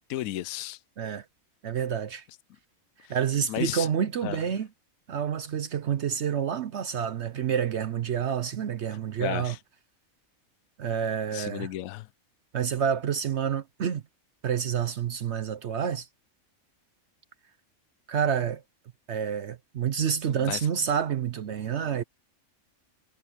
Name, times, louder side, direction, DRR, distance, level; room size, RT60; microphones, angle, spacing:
voice 1, 0.1-0.8 3.0-3.1 3.5-3.9 4.2-4.4 9.2-9.6 11.3-12.1 20.3-20.6, left 14 dB, 75° left, 1.0 m, -33 dB
voice 2, 1.6-2.3 3.0-4.7 5.1-9.5 10.8-11.7 12.5-14.0 14.4-16.1 18.1-18.6 19.1-22.0, right 8 dB, 60° right, 0.9 m, -28 dB
omnidirectional pair, 1.5 m